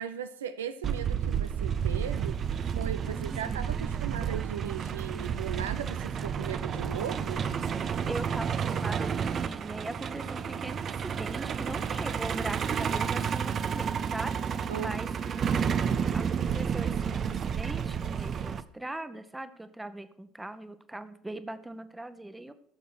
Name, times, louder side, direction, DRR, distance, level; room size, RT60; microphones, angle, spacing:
voice 1, 0.0-2.4 2.6-7.5 14.7-14.9, right 9 dB, 75° right, 10 dB, 0.7 m, -37 dB
Truck, 0.8-18.6, right 7 dB, 40° right, 0.8 m, -31 dB
voice 2, 3.1-3.6 7.6-15.1 15.4-22.5, right 1 dB, 10° right, 10 dB, 1.2 m, -41 dB
15.0 x 7.1 x 6.2 m, 0.69 s
figure-of-eight pair, 65°, 0 cm